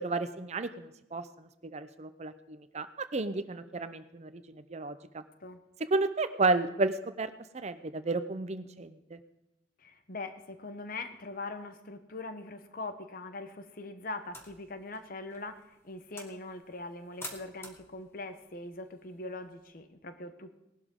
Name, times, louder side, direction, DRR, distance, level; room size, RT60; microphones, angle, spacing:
voice 1, 0.0-5.2 5.9-9.2, right 3 dB, 40° right, 11 dB, 0.6 m, -32 dB
voice 2, 9.8-20.5, left 2 dB, 55° left, 9 dB, 1.0 m, -42 dB
sound 1, 14.2-19.8, left 1 dB, 15° left, 1.7 m, -51 dB
18.5 x 12.0 x 3.7 m, 0.88 s
head